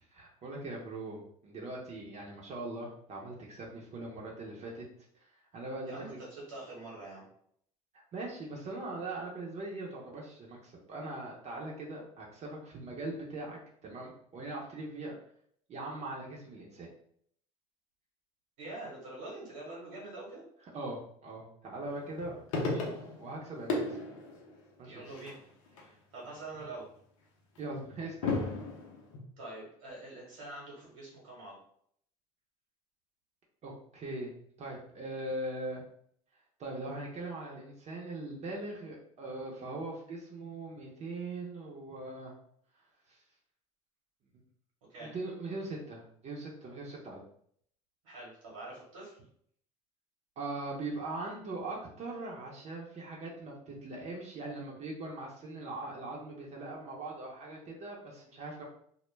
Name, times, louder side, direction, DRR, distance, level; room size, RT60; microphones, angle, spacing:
voice 1, 0.0-4.9 5.5-6.2 8.1-15.1 15.7-16.9 20.7-24.0 24.8-25.0 25.8-25.9 27.6-28.5 33.6-34.3 34.6-35.8 36.6-42.3 43.1-43.2 45.0-47.2 50.4-58.6, right 2 dB, 45° right, -3 dB, 0.7 m, -41 dB
voice 2, 5.8-7.3 18.6-20.4 24.8-25.4 26.1-26.9 29.4-31.6 44.9-45.1 45.6-45.7 48.0-49.2, right 2 dB, 85° right, -5 dB, 1.0 m, -45 dB
sound 1, 21.9-23.4 23.7-25.8 26.2-26.8 27.6-29.2, left 3 dB, 85° left, 0.6 m, -35 dB
2.2 x 2.1 x 3.1 m, 0.65 s
hypercardioid pair, 80°, 16 cm